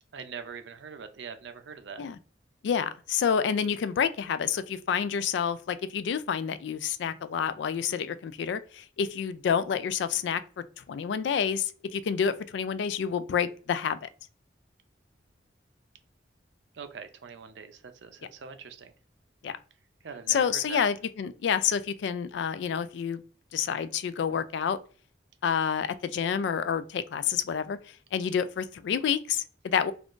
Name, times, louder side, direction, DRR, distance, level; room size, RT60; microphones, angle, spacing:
voice 1, 0.1-2.0 16.7-18.9 20.0-20.8, right 5 dB, 80° right, 0.5 m, -42 dB
voice 2, 2.6-14.1 19.4-19.6 20.3-23.2 23.5-24.8 25.4-27.8 28.1-29.9, left 7 dB, 75° left, 0.3 m, -28 dB
3.6 x 2.4 x 2.4 m
head